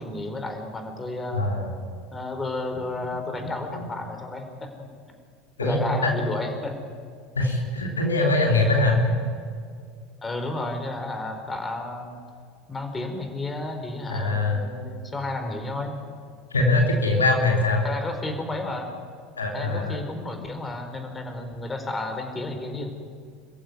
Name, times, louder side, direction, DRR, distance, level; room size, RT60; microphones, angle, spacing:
voice 1, 0.0-1.4 2.1-4.9 5.6-6.7 10.2-12.2 12.7-15.9 17.8-18.9 19.5-22.9, left 2 dB, 20° left, 5 dB, 4.6 m, -32 dB
voice 2, 1.3-1.7 3.4-3.9 5.6-6.2 7.3-9.1 14.1-14.6 16.5-17.8 19.4-20.0, left 2 dB, 85° left, 1 dB, 3.5 m, -23 dB
28.0 x 15.0 x 9.6 m, 2.1 s
figure-of-eight pair, 75°, 0 cm